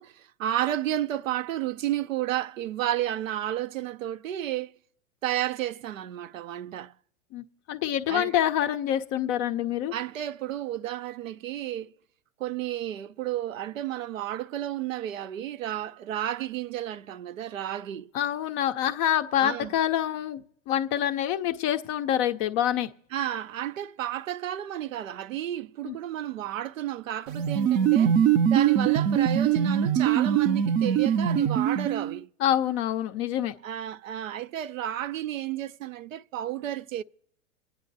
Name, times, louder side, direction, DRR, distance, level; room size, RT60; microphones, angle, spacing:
voice 1, 0.0-4.7 5.2-6.9 8.1-8.3 9.9-11.9 12.4-18.1 19.4-19.7 23.1-28.2 28.5-32.3 33.6-37.0, right 12 dB, 75° right, 0.6 m, -32 dB
voice 2, 7.3-9.9 18.1-20.4 20.7-22.9 25.9-26.0 32.4-33.5, left 11 dB, 30° left, 0.5 m, -26 dB
sound 1, 27.3-32.2, right 9 dB, 30° right, 0.4 m, -23 dB
27.0 x 9.3 x 2.6 m
hypercardioid pair, 110°, 40 cm